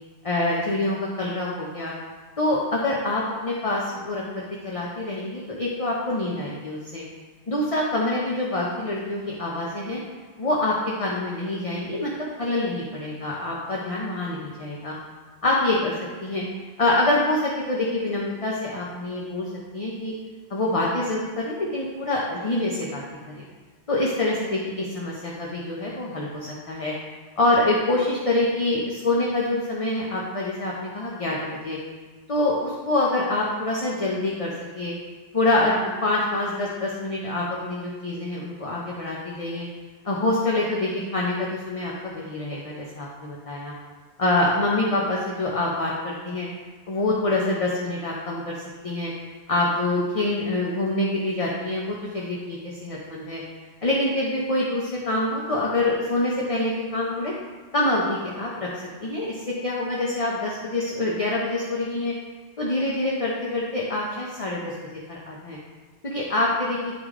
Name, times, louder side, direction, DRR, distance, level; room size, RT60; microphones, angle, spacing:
voice 1, 0.2-1.9 2.4-7.0 7.5-10.0 10.4-14.9 15.4-15.9 16.2-16.4 16.8-20.1 20.5-23.0 23.4-23.5 23.9-26.9 27.4-31.8 32.3-34.9 35.3-35.8 36.0-39.7 40.0-43.7 44.2-46.5 46.9-48.6 48.8-49.1 49.5-53.4 53.8-57.3 57.7-58.7 59.0-62.1 62.6-64.7 65.1-65.6 66.0-66.8, left 2 dB, 35° left, -4 dB, 0.8 m, -26 dB
9.8 x 3.3 x 3.7 m, 1.3 s
omnidirectional pair, 1.1 m